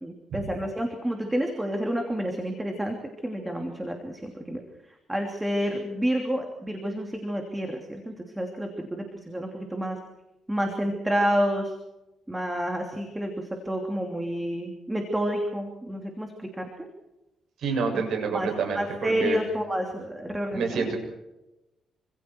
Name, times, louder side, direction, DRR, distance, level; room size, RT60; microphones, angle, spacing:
voice 1, 0.0-3.0 3.2-4.6 5.1-10.0 10.5-11.7 12.3-16.7 18.3-20.9, equal, 10° right, 2 dB, 3.0 m, -29 dB
voice 2, 17.6-19.4 20.5-21.0, right 5 dB, 70° right, 4 dB, 7.2 m, -28 dB
27.0 x 26.0 x 4.7 m, 0.97 s
cardioid pair, 140°, 0 cm